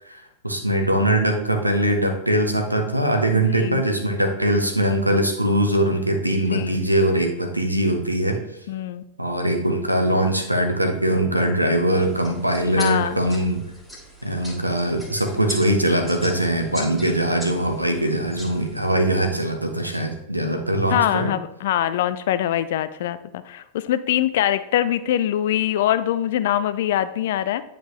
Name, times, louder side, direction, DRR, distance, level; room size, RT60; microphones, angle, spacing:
voice 1, 0.0-8.4 9.2-13.6 14.2-21.3, right 1 dB, 85° right, 4 dB, 1.0 m, -22 dB
voice 2, 3.3-3.8 6.5-6.8 8.7-9.0 12.8-13.2 20.9-27.6, left 11 dB, 55° left, 13 dB, 0.4 m, -23 dB
sound 1, 12.0-18.9, left 1 dB, 5° right, 1.9 m, -40 dB
9.1 x 5.0 x 3.0 m, 0.86 s
figure-of-eight pair, 90°, 0 cm